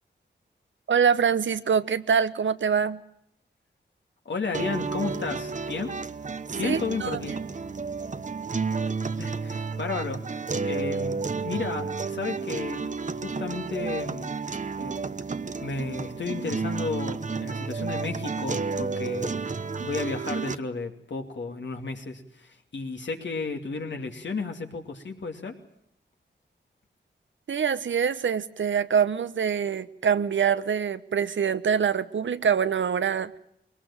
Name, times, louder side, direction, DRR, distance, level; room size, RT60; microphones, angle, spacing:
voice 1, 0.9-3.0 6.6-7.2 27.5-33.4, right 7 dB, 75° right, 13 dB, 1.0 m, -24 dB
voice 2, 4.2-6.0 6.5-7.4 9.2-12.9 13.2-14.3 14.8-15.1 15.6-19.4 19.8-25.5, left 4 dB, 70° left, 4 dB, 2.9 m, -33 dB
sound 1, 4.5-20.6, right 4 dB, 40° right, 1.0 m, -31 dB
21.0 x 19.0 x 8.9 m, 0.75 s
cardioid pair, 55°, 20 cm